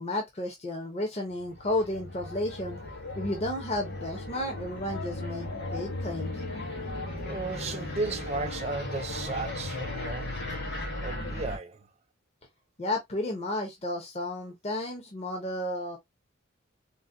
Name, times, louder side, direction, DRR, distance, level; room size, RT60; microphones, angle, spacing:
voice 1, 0.0-2.8 3.2-6.4 12.8-16.0, left 1 dB, 30° left, 0.6 m, -32 dB
sound 1, 1.4-11.6, left 1 dB, 55° left, 1.8 m, -36 dB
voice 2, 7.1-10.4 11.0-11.9, right 3 dB, 35° right, 0.5 m, -35 dB
3.9 x 2.1 x 2.5 m
head